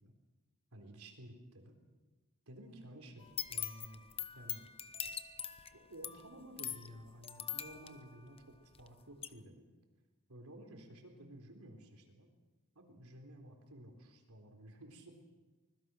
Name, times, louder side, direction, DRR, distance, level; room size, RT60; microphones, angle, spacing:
voice 1, 0.7-1.7 2.5-4.0 4.3-4.7 5.7-9.6 10.3-12.3 12.8-15.2, right 1 dB, 75° right, 3 dB, 4.0 m, -53 dB
sound 1, 3.2-8.9 9.2-9.3, left 8 dB, 25° left, 0.9 m, -43 dB
25.0 x 21.0 x 6.4 m, 1.2 s
head